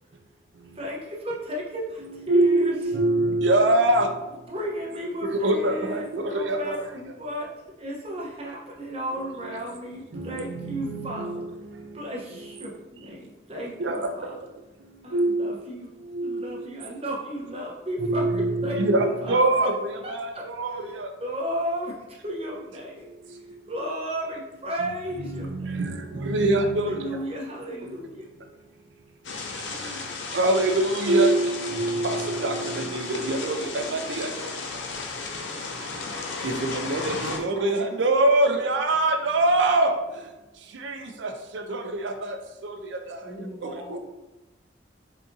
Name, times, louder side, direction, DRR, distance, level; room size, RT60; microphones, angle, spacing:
voice 1, 0.7-2.8 4.5-7.5 7.8-11.4 11.9-14.5 15.0-15.9 16.2-18.8 19.2-19.7 20.0-20.4 20.9-23.1 23.6-25.8 26.8-28.3, equal, 35° right, -3 dB, 0.9 m, -34 dB
voice 2, 2.0-4.1 5.2-6.7 10.1-11.4 13.8-14.0 15.1-15.5 16.1-16.4 18.1-19.7 20.1-21.1 25.2-27.2 29.9-30.0 30.3-34.5 36.4-39.9 40.8-42.4 42.6-42.7 43.6-44.0, right 2 dB, 80° right, 5 dB, 0.5 m, -24 dB
sound 1, 29.2-37.4, left 4 dB, 80° left, 0.6 m, -34 dB
voice 3, 37.5-37.9 43.2-44.0, equal, 15° left, -7 dB, 0.8 m, -40 dB
4.2 x 3.6 x 2.7 m, 1.0 s
head